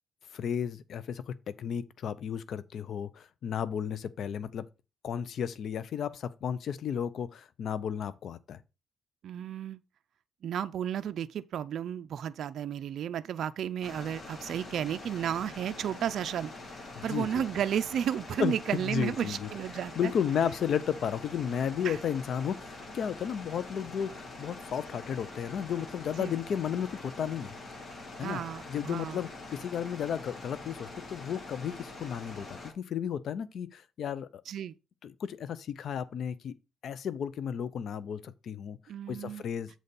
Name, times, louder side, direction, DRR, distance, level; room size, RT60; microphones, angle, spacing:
voice 1, 0.3-4.6 5.0-8.6 17.0-17.4 18.4-19.5 20.0-27.5 28.2-28.4 28.7-34.4 35.0-36.5 36.8-38.8 39.1-39.7, left 8 dB, 65° left, 0.6 m, -33 dB
voice 2, 9.2-9.8 10.4-16.5 17.0-20.1 21.8-22.0 26.2-26.3 28.2-29.2 34.5-34.7 38.9-39.4, right 9 dB, 65° right, 0.4 m, -33 dB
sound 1, 13.8-32.7, left 2 dB, 45° left, 4.5 m, -45 dB
7.7 x 4.1 x 5.3 m
cardioid pair, 90°, 0 cm